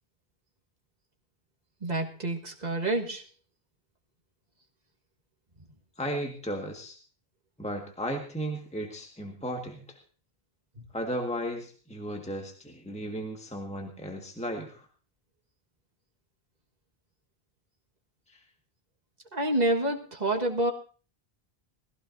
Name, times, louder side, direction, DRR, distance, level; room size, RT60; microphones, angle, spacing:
voice 1, 1.8-3.2 19.3-20.7, right 1 dB, 45° right, 2 dB, 1.7 m, -28 dB
voice 2, 6.0-7.0 7.6-10.0 10.9-14.9 18.3-18.4, equal, 5° left, 2 dB, 1.7 m, -35 dB
21.0 x 15.5 x 2.7 m, 0.37 s
omnidirectional pair, 1.0 m